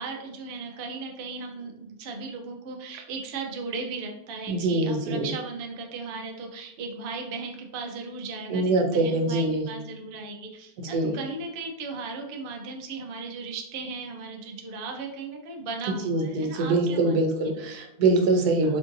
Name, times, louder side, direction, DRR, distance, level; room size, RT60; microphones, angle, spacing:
voice 1, 0.0-17.2 18.6-18.7, right 4 dB, 70° right, 2 dB, 0.5 m, -36 dB
voice 2, 4.5-5.3 8.5-9.6 10.8-11.1 16.0-18.8, right 2 dB, 85° right, 4 dB, 1.1 m, -24 dB
3.6 x 2.6 x 2.5 m, 0.84 s
omnidirectional pair, 1.6 m